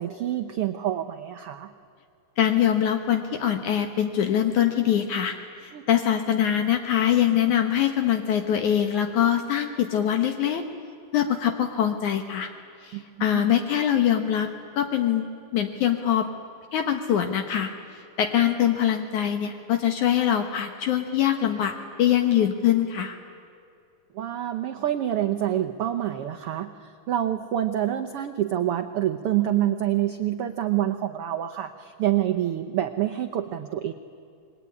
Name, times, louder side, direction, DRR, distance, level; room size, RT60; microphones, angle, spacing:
voice 1, 0.0-1.7 5.7-5.8 12.9-13.0 13.3-13.4 24.1-33.9, right 12 dB, 70° right, 7 dB, 1.3 m, -27 dB
voice 2, 2.4-5.3 5.6-10.6 11.1-12.5 12.8-14.5 14.8-15.3 15.5-16.3 16.7-17.7 18.2-23.2, left 10 dB, 70° left, 6 dB, 2.6 m, -23 dB
27.0 x 22.5 x 9.8 m, 2.5 s
omnidirectional pair, 3.8 m